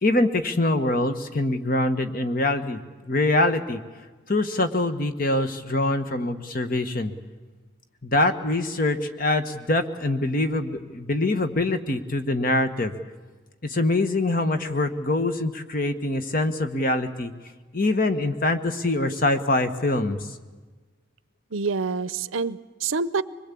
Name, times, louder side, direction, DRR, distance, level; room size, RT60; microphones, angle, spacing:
voice 1, 0.0-2.8 3.1-3.8 4.3-7.1 8.0-12.9 13.6-17.3 17.7-20.2, left 2 dB, 45° left, 9 dB, 1.3 m, -24 dB
voice 2, 21.5-23.2, right 4 dB, 85° right, 17 dB, 0.7 m, -27 dB
24.5 x 21.5 x 8.5 m, 1.3 s
head